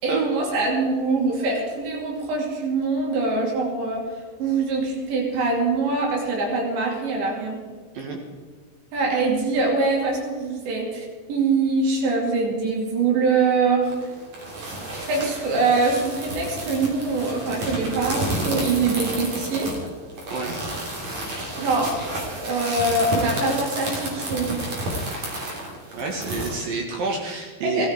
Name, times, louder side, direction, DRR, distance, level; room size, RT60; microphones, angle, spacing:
voice 1, 0.0-4.0 4.4-7.6 8.9-13.9 15.1-19.7 21.5-22.0 22.3-24.6 27.6-27.9, right 3 dB, 80° right, -1 dB, 4.9 m, -23 dB
sound 1, 13.8-26.6, right 1 dB, 40° right, 3.7 m, -31 dB
voice 2, 20.3-20.6 25.9-27.9, right 4 dB, 60° right, 1 dB, 2.8 m, -28 dB
16.5 x 13.5 x 4.7 m, 1.5 s
omnidirectional pair, 5.1 m